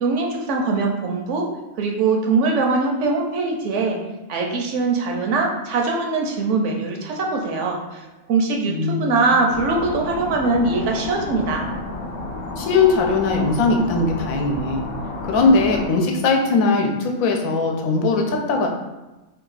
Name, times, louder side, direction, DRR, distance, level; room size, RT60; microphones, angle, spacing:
voice 1, 0.0-1.5 1.8-4.0 4.3-11.6, right 3 dB, 70° right, 1 dB, 0.8 m, -22 dB
voice 2, 8.7-9.0 12.6-14.8 15.2-18.7, left 3 dB, 85° left, 2 dB, 1.0 m, -19 dB
sound 1, 9.5-15.9, left 2 dB, 65° left, 0.6 m, -31 dB
2.8 x 2.3 x 3.9 m, 1.1 s
omnidirectional pair, 1.4 m